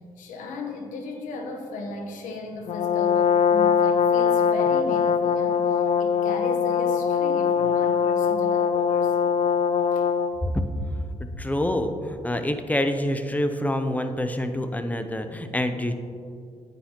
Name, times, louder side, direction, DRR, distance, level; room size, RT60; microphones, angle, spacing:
voice 1, 0.2-9.3 9.9-10.1, left 3 dB, 85° left, 3 dB, 1.1 m, -36 dB
Brass instrument, 2.7-10.4, left 6 dB, 55° left, 0.4 m, -22 dB
voice 2, 11.4-15.9, left 1 dB, 10° left, 8 dB, 0.6 m, -26 dB
9.9 x 8.1 x 3.0 m, 2.4 s
cardioid pair, 80°, 13 cm